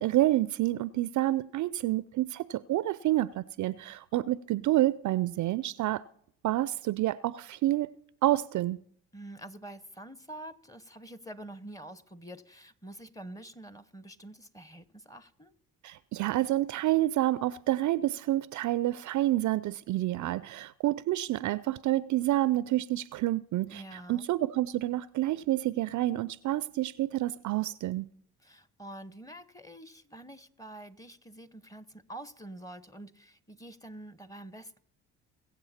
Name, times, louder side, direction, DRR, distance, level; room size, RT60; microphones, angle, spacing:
voice 1, 0.0-6.0 6.4-8.8 15.8-28.1, right 15 dB, 50° right, 0.5 m, -28 dB
voice 2, 9.1-15.5 23.7-24.3 28.4-34.8, right 1 dB, 10° left, 0.9 m, -46 dB
22.5 x 7.8 x 4.3 m
hypercardioid pair, 55°, 38 cm